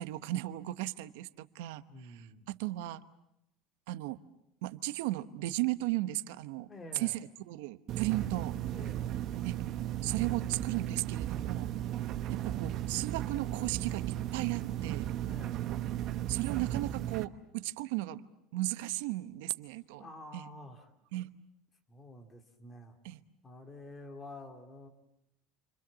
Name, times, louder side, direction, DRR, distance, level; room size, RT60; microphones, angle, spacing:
voice 1, 0.0-3.0 3.9-4.2 4.6-8.6 9.4-9.6 10.0-11.7 12.3-15.1 16.3-18.3 18.5-20.1 20.3-20.5 21.1-21.3 23.0-23.2, right 17 dB, 80° right, 13 dB, 1.0 m, -35 dB
voice 2, 1.9-2.5 6.7-7.2 8.7-9.1 12.6-12.7 15.3-15.6 20.0-20.9 21.9-23.0 23.4-24.9, left 2 dB, 15° left, 5 dB, 2.5 m, -49 dB
sound 1, 7.9-17.3, right 12 dB, 40° right, 1.0 m, -35 dB
29.0 x 25.5 x 7.4 m, 0.81 s
cardioid pair, 170°, 0 cm